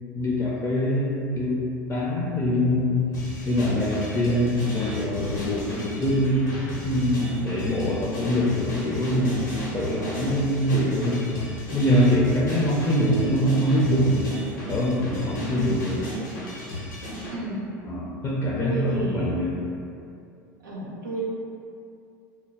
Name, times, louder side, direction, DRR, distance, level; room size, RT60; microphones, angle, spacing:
voice 1, 0.1-3.1 3.4-6.5 6.8-14.3 14.7-16.1 17.8-19.6, equal, 25° left, -6 dB, 0.5 m, -24 dB
sound 1, 3.1-17.4, left 1 dB, 85° left, 0.7 m, -34 dB
voice 2, 17.3-17.8 18.6-19.3 20.6-21.2, right 1 dB, 85° right, -6 dB, 0.6 m, -32 dB
2.1 x 2.0 x 3.3 m, 2.5 s
hypercardioid pair, 85°, 10 cm